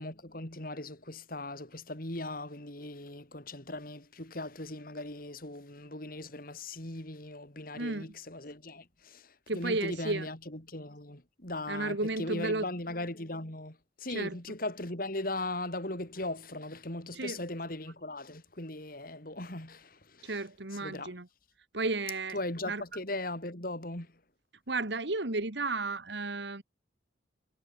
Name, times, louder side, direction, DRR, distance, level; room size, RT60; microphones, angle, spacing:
voice 1, 0.0-20.3 20.8-21.1 22.3-24.1, left 2 dB, 50° left, 3.7 m, -39 dB
voice 2, 7.7-8.1 9.5-10.3 11.7-12.7 14.1-14.4 17.1-17.4 20.2-21.3 21.7-22.4 22.7-22.8 24.7-26.6, right 3 dB, 70° right, 2.0 m, -33 dB
head